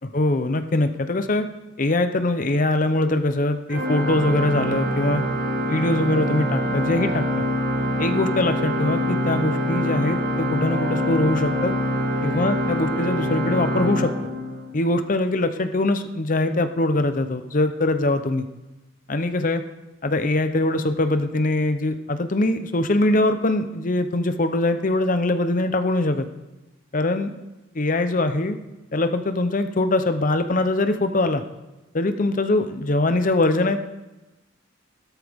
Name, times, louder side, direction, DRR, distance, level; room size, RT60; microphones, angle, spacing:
voice 1, 0.1-1.5 1.8-5.2 5.7-7.2 8.0-11.7 12.2-14.1 14.7-18.5 19.1-19.6 20.0-26.3 26.9-27.3 27.7-28.6 28.9-31.4 31.9-33.9, left 2 dB, 40° left, 9 dB, 0.8 m, -22 dB
Organ, 3.7-14.9, equal, 50° right, 1.6 m, -25 dB
15.5 x 13.0 x 3.6 m, 1.1 s
head